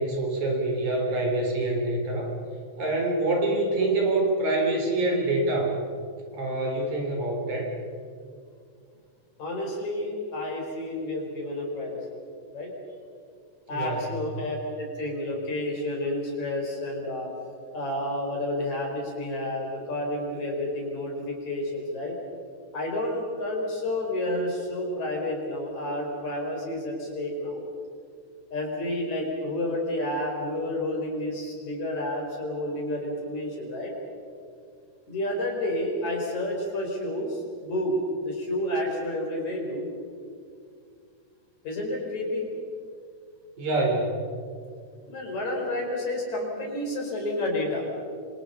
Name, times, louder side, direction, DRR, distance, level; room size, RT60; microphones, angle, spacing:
voice 1, 0.0-2.3 2.8-5.8 6.3-7.7 13.7-14.2 43.6-44.3, right 2 dB, 60° right, 1 dB, 5.2 m, -26 dB
voice 2, 9.4-12.0 12.5-12.7 13.7-17.3 17.7-22.2 22.7-27.6 28.5-33.9 35.1-39.9 41.6-42.5 45.1-47.9, left 1 dB, 60° left, 0 dB, 6.3 m, -30 dB
27.5 x 26.0 x 5.7 m, 2.3 s
omnidirectional pair, 3.7 m